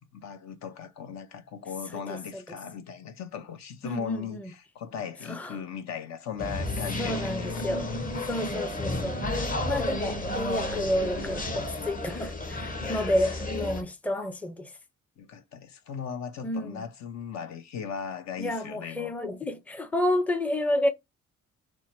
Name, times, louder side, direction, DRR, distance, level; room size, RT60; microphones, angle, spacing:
voice 1, 0.1-7.7 12.8-13.3 15.2-19.1, left 7 dB, 65° left, 0.7 m, -38 dB
voice 2, 2.1-2.4 3.8-4.5 5.3-5.6 7.0-7.9 8.2-9.2 9.7-14.7 16.4-16.8 18.4-20.9, left 1 dB, 5° left, 0.5 m, -30 dB
sound 1, 6.4-13.8, left 2 dB, 30° left, 1.0 m, -32 dB
4.4 x 2.1 x 4.4 m
cardioid pair, 90°, 30 cm